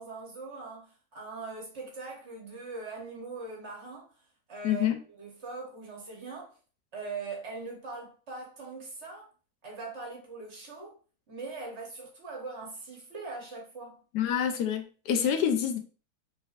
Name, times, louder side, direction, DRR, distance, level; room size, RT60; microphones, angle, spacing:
voice 1, 0.0-4.1 4.5-6.6 6.9-9.3 9.6-11.0 11.3-14.0, right 3 dB, 45° right, 1.2 m, -41 dB
voice 2, 4.6-5.0 14.1-15.8, left 9 dB, 85° left, 1.2 m, -27 dB
4.3 x 3.5 x 2.4 m
omnidirectional pair, 1.7 m